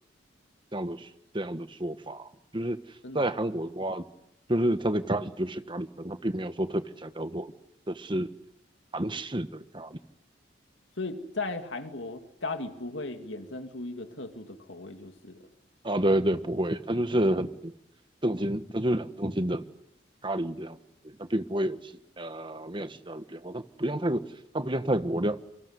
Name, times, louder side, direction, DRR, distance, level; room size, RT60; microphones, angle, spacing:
voice 1, 0.7-1.1 1.3-2.8 3.1-4.0 4.5-7.5 7.9-8.3 8.9-10.0 15.8-17.7 18.2-19.6 20.2-20.8 21.0-24.2 24.5-25.4, right 1 dB, 25° right, 10 dB, 1.4 m, -29 dB
voice 2, 11.0-15.5, left 3 dB, 80° left, 6 dB, 2.6 m, -37 dB
28.0 x 24.5 x 8.3 m, 0.81 s
head